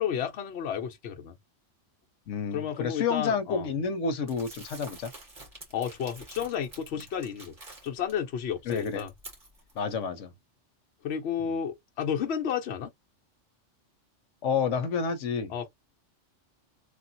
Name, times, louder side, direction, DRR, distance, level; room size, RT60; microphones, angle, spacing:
voice 1, 0.0-1.3 2.5-3.7 5.7-7.6 7.8-9.1 11.0-12.9 15.5-15.7, left 8 dB, 65° left, 1.0 m, -32 dB
voice 2, 2.3-5.1 8.7-9.0 9.8-10.3 14.4-15.5, left 5 dB, 85° left, 1.0 m, -29 dB
Crumpling crinkling, 4.3-8.1 8.5-9.8, right 2 dB, 45° right, 1.7 m, -48 dB
3.2 x 2.4 x 2.7 m
omnidirectional pair, 1.2 m